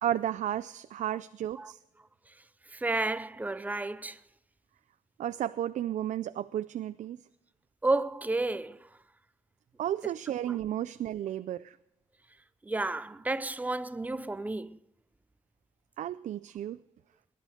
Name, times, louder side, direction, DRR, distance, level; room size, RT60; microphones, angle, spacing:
voice 1, 0.0-1.8 5.2-7.2 9.8-11.8 16.0-16.8, right 11 dB, 65° right, 0.4 m, -33 dB
voice 2, 2.3-4.2 7.8-9.0 10.5-10.6 12.6-14.8, right 2 dB, 10° right, 0.5 m, -32 dB
20.5 x 11.0 x 5.0 m
wide cardioid pair, 175°, 13 cm